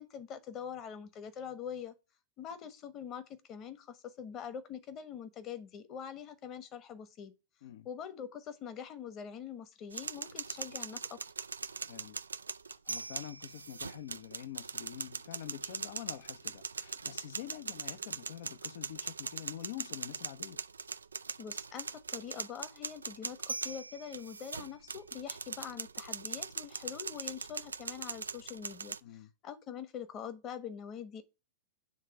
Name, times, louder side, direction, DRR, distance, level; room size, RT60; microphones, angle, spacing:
voice 1, 0.0-1.9 2.4-7.3 7.8-11.2 21.4-29.0 29.4-31.2, left 8 dB, 35° left, 1.2 m, -44 dB
sound 1, 9.9-29.0, right 4 dB, 90° right, 0.3 m, -41 dB
voice 2, 11.9-12.2 12.7-20.6 29.0-29.3, left 11 dB, 60° left, 0.7 m, -46 dB
7.3 x 3.3 x 6.0 m
hypercardioid pair, 105°, 0 cm